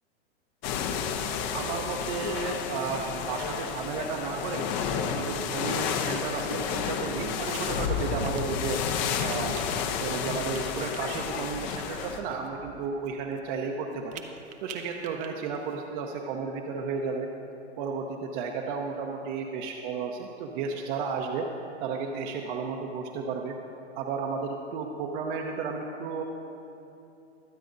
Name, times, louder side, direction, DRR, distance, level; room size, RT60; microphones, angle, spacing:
sound 1, 0.6-12.2, left 6 dB, 40° left, 0.9 m, -31 dB
voice 1, 1.5-4.7 5.1-8.8 9.2-9.6 10.0-17.3 17.8-21.5 21.8-23.5 23.9-26.2, right 5 dB, 45° right, 1 dB, 0.9 m, -33 dB
sound 2, 7.4-7.6 8.2-11.1 11.6-11.8 12.1-13.4 13.9-15.3 15.5-15.7, right 9 dB, 20° right, 0.6 m, -46 dB
23.0 x 8.2 x 2.7 m, 2.8 s
hypercardioid pair, 125°, 34 cm